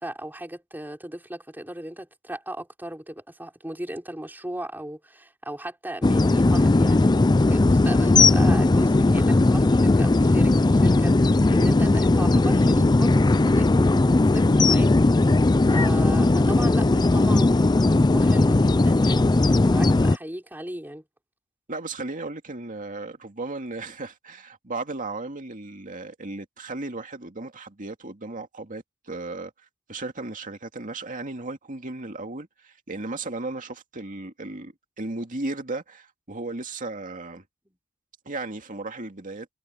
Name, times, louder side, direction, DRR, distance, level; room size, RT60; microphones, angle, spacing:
voice 1, 0.0-15.4 15.7-21.0 37.7-37.8, right 1 dB, 10° right, 4.3 m, -37 dB
sound 1, 6.0-20.2, left 2 dB, 20° left, 0.4 m, -18 dB
voice 2, 21.7-29.5 29.9-37.4 38.3-39.5, right 2 dB, 40° right, 2.3 m, -35 dB
head